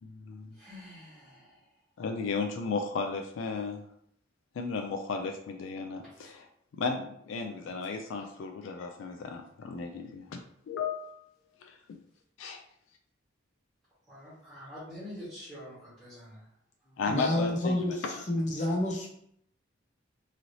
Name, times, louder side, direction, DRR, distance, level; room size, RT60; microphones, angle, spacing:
voice 1, 0.0-0.6 2.0-3.8 4.6-6.5 6.8-11.1 11.6-12.0 12.4-12.6 17.0-17.8 18.1-18.2, left 4 dB, 80° left, 4 dB, 0.3 m, -34 dB
voice 2, 0.5-1.8 6.1-6.4 11.5-11.6 14.1-16.5 16.8-17.0, left 1 dB, ahead, -13 dB, 1.2 m, -47 dB
voice 3, 17.1-17.9 18.3-19.1, left 1 dB, 35° left, -1 dB, 0.6 m, -28 dB
3.1 x 2.7 x 2.6 m, 0.71 s
head